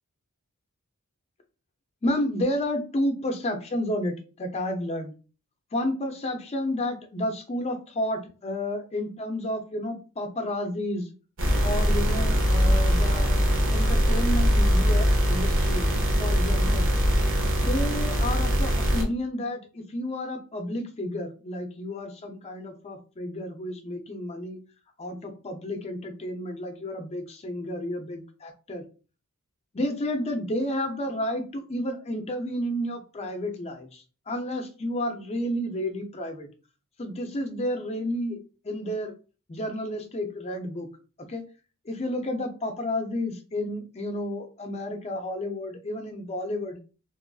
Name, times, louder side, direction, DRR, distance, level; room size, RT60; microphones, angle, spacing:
voice 1, 2.0-5.1 5.7-11.1 11.6-15.9 16.2-16.9 17.6-24.6 25.0-28.8 29.7-36.5 37.0-38.4 38.6-39.1 39.5-40.9 41.2-41.4 41.9-46.8, left 1 dB, 30° left, 5 dB, 0.5 m, -31 dB
sound 1, 11.4-19.0, equal, 60° right, 0.8 m, -22 dB
3.0 x 2.4 x 2.3 m, 0.35 s
head